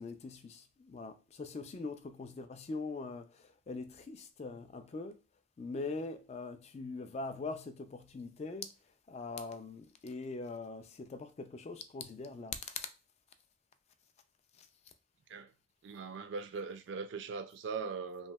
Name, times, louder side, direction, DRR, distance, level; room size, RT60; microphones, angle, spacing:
voice 1, 0.0-5.2 5.6-8.7 9.1-12.9 14.6-14.7, left 3 dB, 35° left, 0.3 m, -42 dB
voice 2, 15.8-18.3, right 5 dB, 75° right, 0.4 m, -40 dB
3.1 x 2.6 x 2.2 m
head